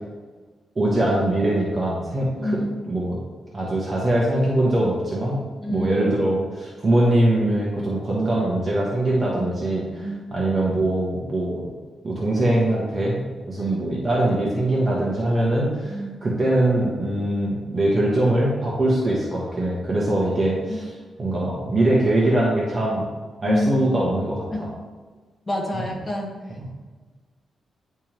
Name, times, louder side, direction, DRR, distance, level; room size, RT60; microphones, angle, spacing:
voice 1, 0.7-2.6 2.9-3.2 3.5-5.4 5.7-11.7 12.0-20.9 21.2-23.1 23.4-24.7 25.7-25.8 26.6-26.7, right 1 dB, 30° right, -5 dB, 1.2 m, -22 dB
voice 2, 2.4-2.8 5.6-6.1 9.3-10.2 13.6-13.9 15.8-16.2 20.7-20.8 23.4-23.9 24.5-24.6 25.5-26.3, left 1 dB, 20° left, 0 dB, 1.2 m, -28 dB
10.0 x 3.5 x 3.0 m, 1.4 s
wide cardioid pair, 130°, 0 cm